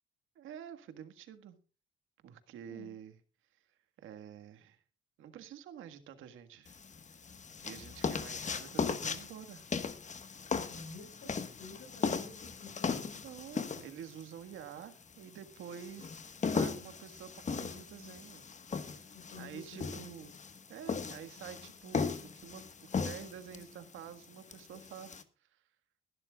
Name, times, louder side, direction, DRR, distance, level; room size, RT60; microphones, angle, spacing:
voice 1, 0.3-1.6 2.2-3.2 3.5-3.6 4.0-4.8 5.2-6.8 7.6-9.7 13.2-16.2 16.5-18.4 18.9-20.3 20.7-25.6, right 9 dB, 85° right, 1.7 m, -49 dB
sound 1, 6.7-25.2, left 5 dB, 35° left, 1.4 m, -38 dB
voice 2, 10.5-13.2 19.1-20.0, left 4 dB, 70° left, 5.7 m, -51 dB
21.0 x 12.0 x 2.4 m
cardioid pair, 90°, 20 cm